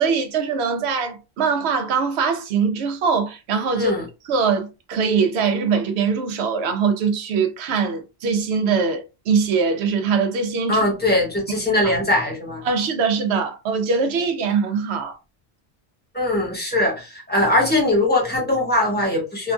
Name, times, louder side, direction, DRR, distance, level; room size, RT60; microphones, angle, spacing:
voice 1, 0.0-3.9 4.2-10.8 11.8-11.9 12.6-15.2, right 5 dB, 75° right, 0.8 m, -22 dB
voice 2, 10.7-12.6 16.1-19.5, left 1 dB, 10° left, 1.0 m, -21 dB
2.9 x 2.4 x 2.3 m
omnidirectional pair, 1.1 m